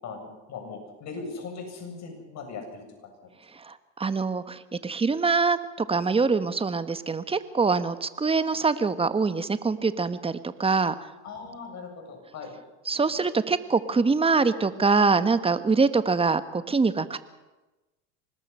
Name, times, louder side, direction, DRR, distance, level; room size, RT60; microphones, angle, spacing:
voice 1, 0.0-2.8 11.2-12.5, left 4 dB, 50° left, 3 dB, 7.8 m, -39 dB
voice 2, 3.6-11.0 12.8-17.2, right 4 dB, 15° right, 12 dB, 1.4 m, -24 dB
25.0 x 20.0 x 5.7 m, 1.1 s
hypercardioid pair, 80°, 36 cm